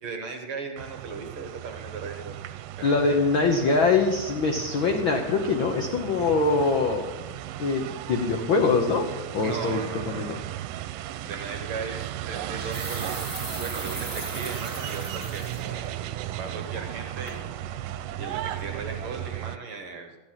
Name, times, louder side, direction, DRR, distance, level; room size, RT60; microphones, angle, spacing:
voice 1, 0.0-3.2 9.4-10.5 11.2-13.3 13.6-16.0 16.3-17.8 18.2-20.2, right 4 dB, 60° right, 5 dB, 1.5 m, -37 dB
sound 1, 0.8-19.6, right 12 dB, 90° right, 2.2 m, -36 dB
voice 2, 2.8-7.1 7.6-9.1 9.3-9.8 10.1-10.4, left 4 dB, 80° left, 3 dB, 1.1 m, -23 dB
sound 2, 11.2-11.3 12.3-15.6 16.1-16.2 16.7-17.0 17.3-17.4, right 1 dB, 5° right, 1.6 m, -38 dB
14.0 x 10.5 x 5.7 m, 1.2 s
omnidirectional pair, 3.7 m